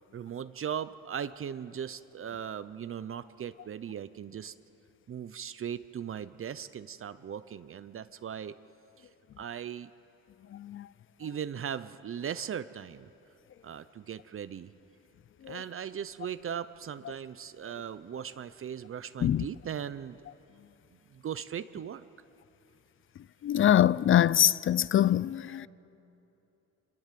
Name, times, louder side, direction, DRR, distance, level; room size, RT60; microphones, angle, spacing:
voice 1, 0.1-4.5 5.1-8.5 9.0-9.1 9.4-9.9 11.2-13.1 13.6-14.7 15.5-20.2 21.1-22.0, right 8 dB, 45° right, 0.7 m, -38 dB
voice 2, 10.5-10.9 15.5-15.6 19.2-19.5 23.4-25.7, left 11 dB, 45° left, 0.5 m, -24 dB
26.5 x 21.5 x 7.6 m
cardioid pair, 90°, 30 cm